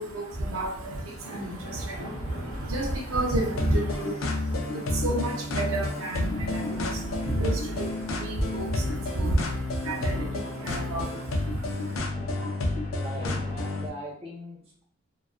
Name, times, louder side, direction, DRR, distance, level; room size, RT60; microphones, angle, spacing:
voice 1, 0.0-12.0, right 1 dB, 85° right, 1 dB, 0.6 m, -31 dB
sound 1, 0.9-13.8, equal, 40° left, 0.9 m, -44 dB
sound 2, 3.6-13.9, left 2 dB, 80° left, 0.4 m, -30 dB
voice 2, 12.9-14.8, equal, 30° right, -3 dB, 0.8 m, -40 dB
2.3 x 2.2 x 2.4 m, 0.63 s
head